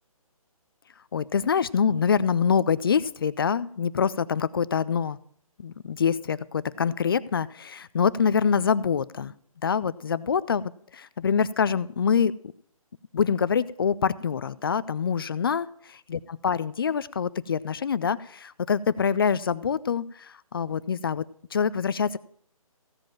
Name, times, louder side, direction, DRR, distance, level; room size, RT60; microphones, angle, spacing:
voice 1, 1.1-5.2 5.6-9.3 9.6-12.3 13.1-15.7 16.3-21.2 21.5-22.2, left 6 dB, 40° left, 19 dB, 0.4 m, -25 dB
15.5 x 5.2 x 7.4 m, 0.63 s
figure-of-eight pair, 150°, 18 cm